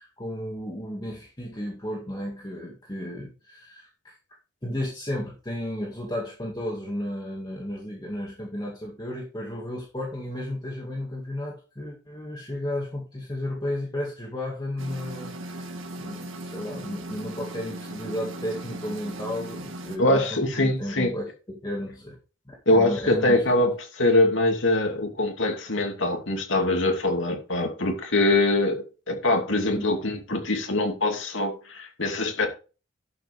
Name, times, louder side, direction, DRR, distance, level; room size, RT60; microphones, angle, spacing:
voice 1, 0.0-4.2 4.6-22.2 22.5-23.6 29.7-29.9, left 1 dB, 20° left, 2.2 m, -33 dB
sound 1, 14.8-20.0, right 1 dB, 85° right, 1.8 m, -38 dB
voice 2, 20.0-21.1 22.7-32.5, left 2 dB, 75° left, 2.6 m, -23 dB
11.5 x 7.7 x 3.5 m
head